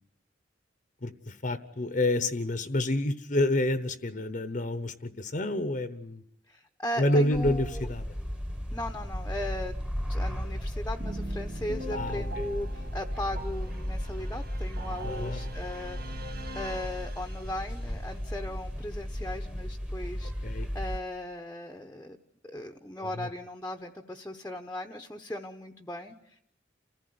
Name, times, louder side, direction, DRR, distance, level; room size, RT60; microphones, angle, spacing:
voice 1, 1.0-6.2 7.0-8.1 11.9-12.5 15.0-15.4 20.4-20.7 23.0-23.3, left 1 dB, 45° left, 11 dB, 1.0 m, -29 dB
voice 2, 6.5-7.9 8.7-9.7 10.1-16.3 16.5-22.2 22.4-26.4, left 1 dB, 10° left, 5 dB, 1.0 m, -38 dB
sound 1, 7.3-21.0, equal, 5° right, 1.3 m, -35 dB
sound 2, 11.0-17.8, right 1 dB, 55° right, 1.6 m, -42 dB
29.5 x 15.5 x 9.4 m, 0.78 s
head